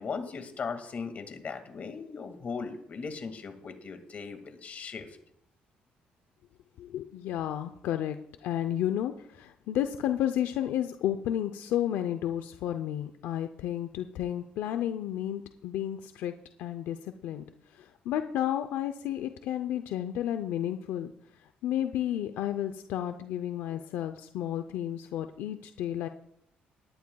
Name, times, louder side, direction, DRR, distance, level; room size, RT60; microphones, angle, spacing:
voice 1, 0.0-5.1, left 5 dB, 45° left, 6 dB, 2.1 m, -38 dB
voice 2, 6.8-16.3 16.6-17.4 17.7-21.1 21.6-26.1, left 11 dB, 85° left, 8 dB, 0.6 m, -32 dB
18.0 x 11.5 x 2.3 m, 0.72 s
cardioid pair, 95°, 3 cm